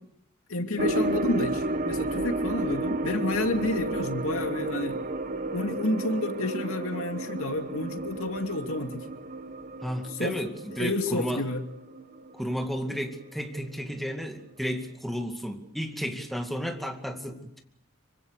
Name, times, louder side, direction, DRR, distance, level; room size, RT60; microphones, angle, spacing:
voice 1, 0.5-5.0 5.5-9.0 10.2-10.4 10.8-11.6, left 2 dB, 80° left, 5 dB, 2.7 m, -30 dB
sound 1, 0.8-13.3 13.6-13.7 14.3-14.4, right 2 dB, 40° right, 1.2 m, -32 dB
voice 2, 9.8-11.4 12.3-17.6, equal, ahead, 4 dB, 2.2 m, -33 dB
26.0 x 24.5 x 6.7 m, 0.77 s
head